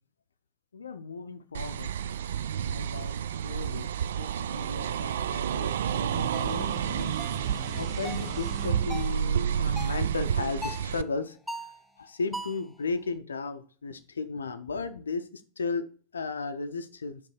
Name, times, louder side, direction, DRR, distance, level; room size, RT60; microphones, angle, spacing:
voice 1, 0.7-1.9 2.6-3.2 3.4-3.9 4.2-7.1 7.8-11.7 12.0-15.8 16.1-17.2, left 4 dB, 70° left, 9 dB, 0.5 m, -35 dB
sound 1, 1.5-11.0, right 9 dB, 60° right, 0.3 m, -30 dB
sound 2, 5.2-10.6, right 3 dB, 25° right, 0.9 m, -43 dB
sound 3, 6.3-6.5 7.2-7.4 8.0-8.3 8.9-9.2 9.8-10.1 10.6-10.9 11.5-11.8 12.3-12.7, equal, ahead, 0.5 m, -39 dB
5.4 x 5.2 x 4.5 m, 0.42 s
figure-of-eight pair, 90°, 0 cm